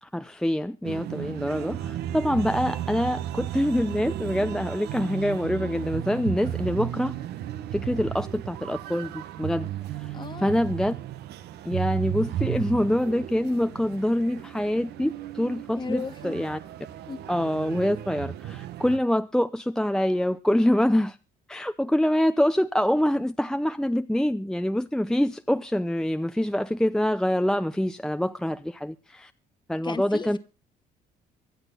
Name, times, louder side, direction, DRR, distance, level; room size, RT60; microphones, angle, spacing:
voice 1, 0.0-7.1 7.7-9.7 10.0-10.9 11.6-16.6 17.3-21.2 21.5-29.3 29.7-30.4, left 1 dB, 5° left, 0.7 m, -25 dB
sound 1, 0.8-19.0, right 11 dB, 75° right, 1.4 m, -34 dB
voice 2, 10.1-10.6 15.7-16.4 17.1-17.3 29.8-30.4, left 5 dB, 25° left, 1.6 m, -35 dB
24.5 x 8.1 x 4.0 m
cardioid pair, 110°, 17 cm